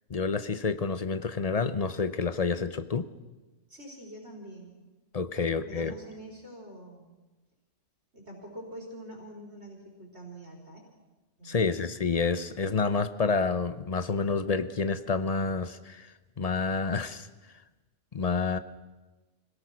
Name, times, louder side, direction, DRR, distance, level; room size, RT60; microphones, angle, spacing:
voice 1, 0.1-3.1 5.1-6.0 11.4-17.3 18.1-18.6, left 4 dB, 35° left, 13 dB, 0.8 m, -29 dB
voice 2, 3.7-4.7 5.4-7.1 8.1-10.8 11.4-11.8, right 1 dB, 55° right, 0 dB, 4.5 m, -45 dB
25.0 x 17.5 x 6.3 m, 1.2 s
omnidirectional pair, 1.3 m